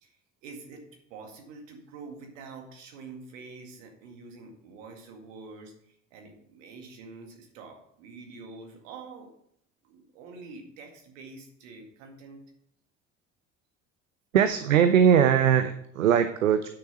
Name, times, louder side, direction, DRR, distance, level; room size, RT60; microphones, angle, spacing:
voice 1, 0.0-0.8 1.1-9.3 9.8-12.4, right 4 dB, 75° right, 3 dB, 2.0 m, -46 dB
voice 2, 14.3-16.7, right 8 dB, 90° right, 10 dB, 0.5 m, -21 dB
9.2 x 6.6 x 5.5 m, 0.70 s
figure-of-eight pair, 55°, 38 cm